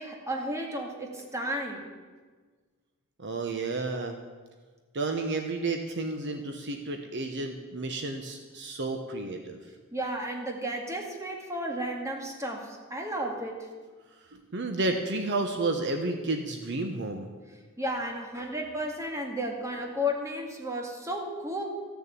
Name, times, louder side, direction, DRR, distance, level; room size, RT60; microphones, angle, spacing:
voice 1, 0.0-1.9 9.9-13.6 17.8-21.6, equal, 15° right, 1 dB, 2.1 m, -33 dB
voice 2, 3.2-4.2 4.9-9.6 14.3-17.3, right 2 dB, 55° right, 5 dB, 1.0 m, -31 dB
14.5 x 6.9 x 9.0 m, 1.4 s
head